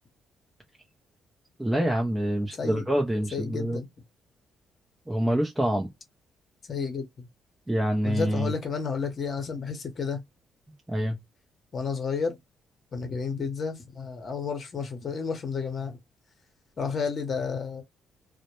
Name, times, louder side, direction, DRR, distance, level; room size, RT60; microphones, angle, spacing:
voice 1, 1.6-3.8 5.1-5.9 7.7-8.5 10.9-11.2, right 1 dB, 10° right, 0.5 m, -26 dB
voice 2, 2.5-2.8 3.3-3.9 6.7-7.3 8.0-10.2 11.7-12.4 12.9-16.0 16.8-17.8, left 5 dB, 45° left, 0.8 m, -31 dB
2.1 x 2.1 x 2.9 m
cardioid pair, 90°, 0 cm